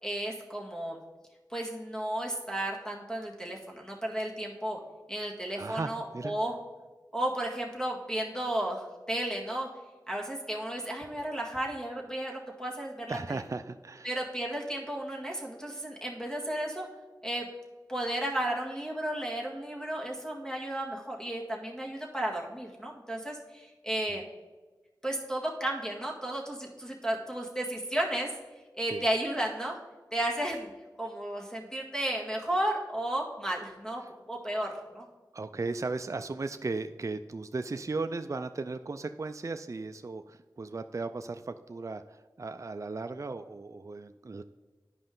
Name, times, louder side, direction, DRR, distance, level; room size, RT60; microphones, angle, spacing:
voice 1, 0.0-1.0 1.5-4.8 5.1-6.5 7.1-9.7 10.1-13.4 14.0-16.9 17.2-17.5 17.9-24.3 25.0-28.3 28.7-29.8 30.1-30.7 31.0-34.0 34.3-35.0, right 1 dB, 10° left, -1 dB, 1.9 m, -33 dB
voice 2, 5.6-6.3 13.1-14.1 24.1-24.2 28.9-29.0 35.3-44.4, right 3 dB, 45° right, 9 dB, 0.3 m, -36 dB
10.0 x 5.2 x 3.8 m, 1.2 s
wide cardioid pair, 40°, 8 cm